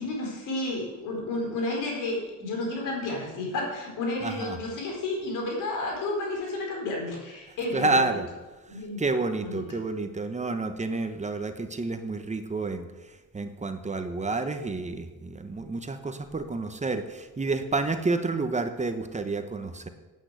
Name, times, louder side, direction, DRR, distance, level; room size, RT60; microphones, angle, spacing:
voice 1, 0.0-8.1 8.7-9.0 9.4-9.6, left 2 dB, 85° left, -1 dB, 4.4 m, -31 dB
voice 2, 4.2-4.6 7.7-8.3 9.0-12.9 13.3-19.9, right 3 dB, 25° right, 8 dB, 1.1 m, -29 dB
9.7 x 8.9 x 8.3 m, 1.2 s
cardioid pair, 90°, 30 cm